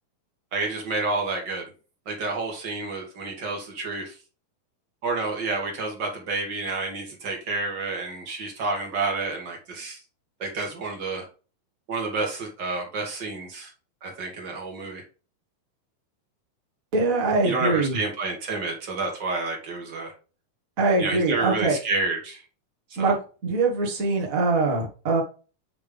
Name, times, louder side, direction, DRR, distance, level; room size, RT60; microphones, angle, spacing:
voice 1, 0.5-1.7 2.0-4.1 5.0-10.0 10.4-11.2 11.9-13.7 14.0-15.0 17.4-20.1 21.0-22.4 22.9-23.1, right 3 dB, 55° right, 1 dB, 1.3 m, -29 dB
voice 2, 16.9-17.9 20.8-21.8 23.0-23.2 23.4-25.2, right 3 dB, 80° right, -1 dB, 0.7 m, -23 dB
8.6 x 3.5 x 3.5 m, 0.35 s
omnidirectional pair, 4.2 m